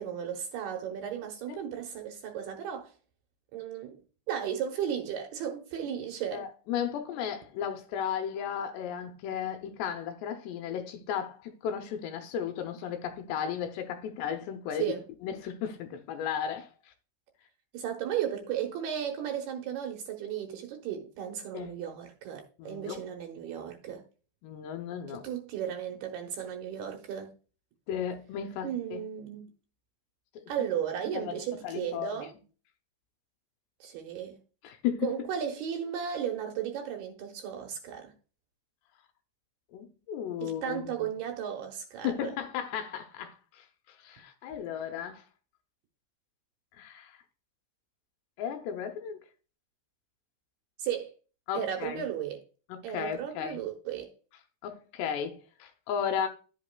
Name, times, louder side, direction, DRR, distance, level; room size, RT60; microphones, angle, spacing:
voice 1, 0.0-2.9 3.5-4.0 4.3-6.5 14.8-15.0 17.7-24.0 25.1-27.3 28.6-29.5 30.5-32.3 33.8-34.4 35.0-38.1 40.4-42.3 50.8-51.1 51.5-52.4 52.8-54.1, right 9 dB, 75° right, 2.5 m, -35 dB
voice 2, 6.3-14.9 15.2-16.9 21.5-21.7 22.6-23.0 24.4-25.3 27.9-29.0 30.4-30.5 31.1-32.3 34.6-35.1 39.7-41.1 42.0-45.2 46.8-47.2 48.4-49.2 51.5-52.1 52.7-53.6 54.6-56.3, left 8 dB, 80° left, 2.6 m, -35 dB
11.5 x 8.2 x 2.2 m
omnidirectional pair, 5.3 m